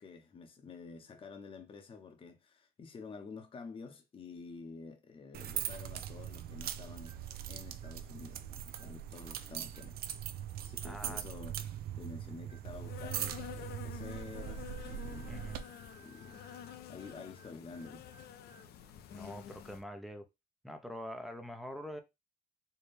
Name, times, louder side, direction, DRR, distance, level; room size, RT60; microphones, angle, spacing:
voice 1, 0.0-7.2 7.5-10.0 10.6-15.5 16.0-16.4 16.9-18.1, left 4 dB, 30° left, 0.8 m, -49 dB
sound 1, 5.3-15.6, right 10 dB, 65° right, 0.5 m, -41 dB
sound 2, 7.0-7.4 7.7-8.1 8.7-9.0 9.7-10.1 10.9-11.3 12.4-12.8 14.0-18.8, right 7 dB, 35° right, 0.8 m, -62 dB
voice 2, 10.8-11.2 15.3-15.6 19.1-20.3 20.6-22.0, equal, ahead, 0.6 m, -44 dB
Insect, 12.6-19.8, left 10 dB, 70° left, 0.6 m, -49 dB
4.4 x 2.2 x 3.3 m
cardioid pair, 110°, 17 cm